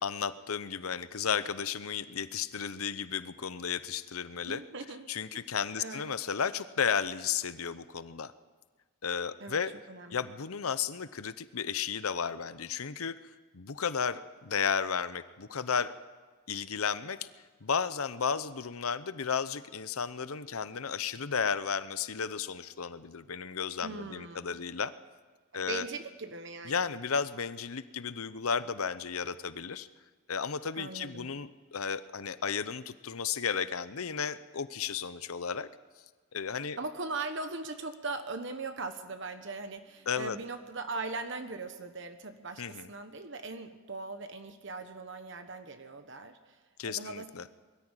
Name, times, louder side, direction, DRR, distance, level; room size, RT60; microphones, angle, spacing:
voice 1, 0.0-4.6 5.1-8.3 9.0-9.7 10.1-13.1 13.5-15.9 16.5-17.2 17.6-24.9 25.5-25.9 26.6-29.9 30.3-35.7 36.3-36.8 40.1-40.4 42.6-42.9 46.8-47.4, left 6 dB, 80° left, 14 dB, 0.8 m, -33 dB
voice 2, 4.5-5.0 5.3-5.4 5.8-6.1 9.4-9.6 9.9-10.3 23.8-24.6 25.5-26.9 30.7-31.3 36.8-46.6 46.8-47.3, right 3 dB, 55° right, 7 dB, 1.2 m, -40 dB
22.0 x 13.5 x 9.1 m, 1.4 s
head